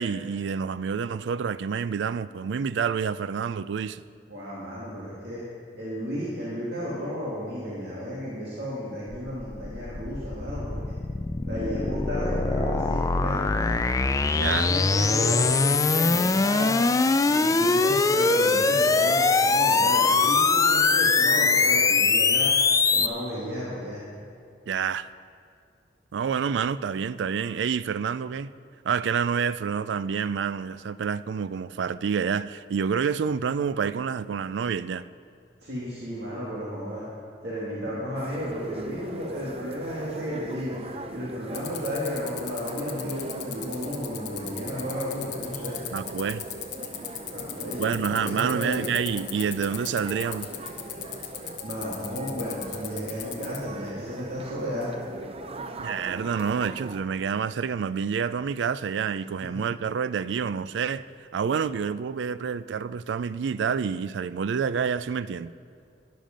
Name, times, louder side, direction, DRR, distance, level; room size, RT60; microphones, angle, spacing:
voice 1, 0.0-4.0 14.3-14.7 24.7-25.1 26.1-28.5 28.8-35.0 45.9-46.4 47.8-50.5 55.8-61.0 61.3-65.5, right 6 dB, 90° right, 0.4 m, -28 dB
voice 2, 4.3-5.4 5.7-11.0 11.4-13.8 14.3-16.8 17.2-22.5 22.9-24.0 35.6-37.0 37.4-40.8 41.1-45.8 47.3-48.9 51.6-54.9 59.4-59.7, equal, 65° right, 2.2 m, -33 dB
sound 1, 9.1-23.1, left 4 dB, 20° left, 0.3 m, -22 dB
sound 2, 38.2-57.0, right 2 dB, 35° right, 0.5 m, -40 dB
sound 3, 41.5-53.6, left 13 dB, 75° left, 1.2 m, -35 dB
12.5 x 10.5 x 5.2 m
head